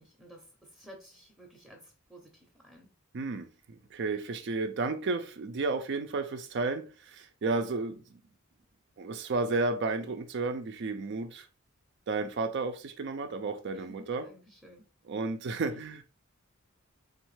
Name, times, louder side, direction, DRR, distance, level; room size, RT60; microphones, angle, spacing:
voice 1, 0.0-2.9 13.7-14.8, equal, ahead, 0.6 m, -54 dB
voice 2, 3.1-8.2 9.0-11.5 12.1-14.3 15.1-16.0, right 3 dB, 60° right, 0.4 m, -32 dB
4.0 x 3.1 x 3.2 m
head